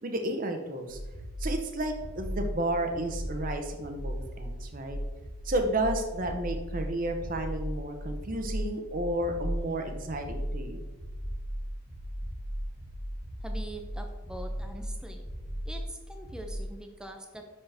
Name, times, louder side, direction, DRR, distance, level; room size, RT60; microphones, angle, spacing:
voice 1, 0.0-1.0 1.4-5.0 5.4-10.8, right 1 dB, 40° right, 5 dB, 0.7 m, -32 dB
sound 1, 0.9-16.7, equal, 75° right, 1.6 m, -37 dB
voice 2, 13.4-15.2 15.6-17.5, right 1 dB, 5° right, 4 dB, 0.5 m, -43 dB
5.7 x 5.6 x 3.4 m, 1.2 s
head